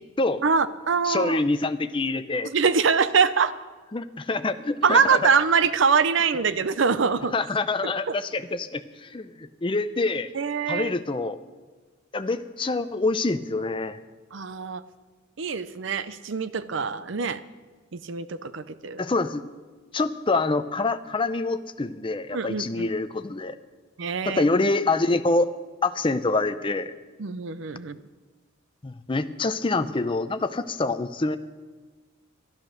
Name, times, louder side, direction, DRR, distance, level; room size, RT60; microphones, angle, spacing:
voice 1, 0.4-1.4 2.4-3.5 4.8-7.3 8.1-8.2 10.3-10.9 14.3-14.8 15.4-17.4 17.9-19.0 22.3-22.9 24.0-24.4 27.2-28.0, right 5 dB, 65° right, 14 dB, 0.6 m, -24 dB
voice 2, 1.0-2.5 3.9-5.2 7.3-10.3 10.7-11.4 12.1-14.0 19.0-19.4 19.9-23.5 24.3-25.5 25.8-26.9 28.8-31.4, left 3 dB, 25° left, 11 dB, 0.5 m, -26 dB
12.0 x 12.0 x 6.5 m, 1.3 s
head